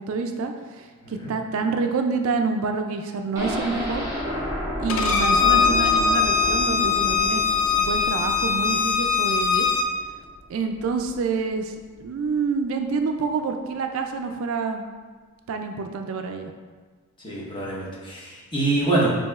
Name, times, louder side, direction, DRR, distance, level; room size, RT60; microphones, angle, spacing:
voice 1, 0.0-0.9 1.1-4.1 4.8-7.4 7.8-9.7 10.5-11.7 12.0-14.9 15.5-16.5, right 4 dB, 60° right, 6 dB, 0.3 m, -27 dB
sound 1, 3.3-11.2 11.6-11.7 12.0-12.1, equal, 15° right, 1.3 m, -32 dB
Bowed string instrument, 4.9-9.9, left 6 dB, 65° left, 0.4 m, -21 dB
voice 2, 17.2-19.2, right 2 dB, 20° left, -6 dB, 0.9 m, -25 dB
7.0 x 2.8 x 2.3 m, 1.4 s
head